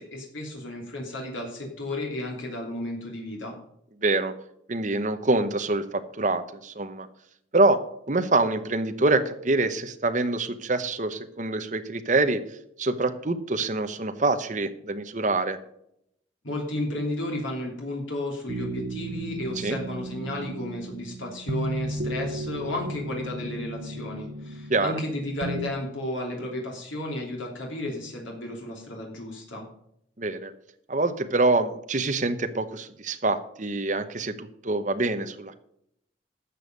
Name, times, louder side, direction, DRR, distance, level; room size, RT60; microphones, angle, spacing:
voice 1, 0.0-3.5 16.4-29.6, left 1 dB, 90° left, -1 dB, 3.0 m, -33 dB
voice 2, 4.0-4.3 4.7-7.1 7.5-7.8 8.1-12.4 12.8-15.6 19.6-19.8 24.7-25.0 30.2-30.5 30.9-35.5, right 2 dB, 40° right, 8 dB, 0.9 m, -25 dB
sound 1, 18.5-25.7, right 1 dB, 75° right, 1.0 m, -34 dB
12.5 x 7.1 x 5.3 m, 0.73 s
head